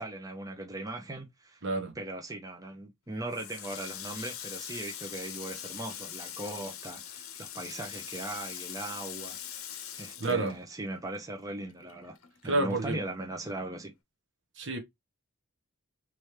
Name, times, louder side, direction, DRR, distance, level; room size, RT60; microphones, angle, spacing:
voice 1, 0.0-1.6 2.0-12.2 12.4-13.9, right 2 dB, 15° right, 0.7 m, -39 dB
voice 2, 1.6-1.9 10.2-10.5 12.4-13.0 14.6-14.8, right 3 dB, 60° right, 1.2 m, -29 dB
Water tap faucet, 3.3-11.2 11.5-12.8, left 10 dB, 70° left, 0.7 m, -42 dB
3.5 x 3.2 x 3.1 m
head